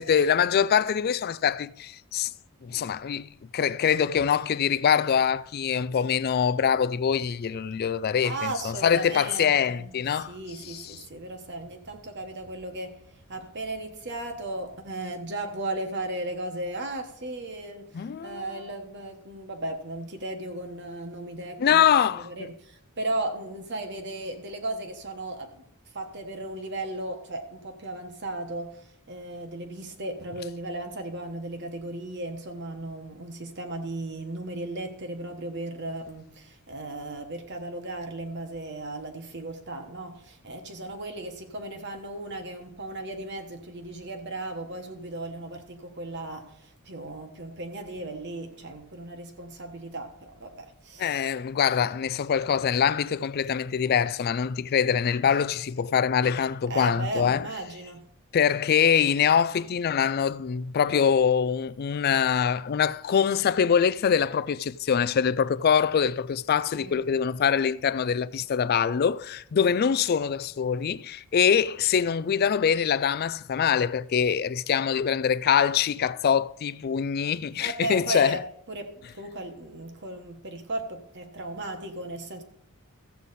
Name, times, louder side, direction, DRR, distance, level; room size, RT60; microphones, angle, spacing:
voice 1, 0.0-2.3 2.6-11.0 17.9-18.6 21.6-22.5 51.0-57.5 58.3-78.4, left 7 dB, 45° left, 0.3 m, -24 dB
voice 2, 8.2-21.9 22.1-25.6 25.9-28.8 29.1-51.2 56.7-58.1 66.7-67.0 77.6-82.4, right 2 dB, 50° right, 1.3 m, -36 dB
14.0 x 8.1 x 4.2 m
head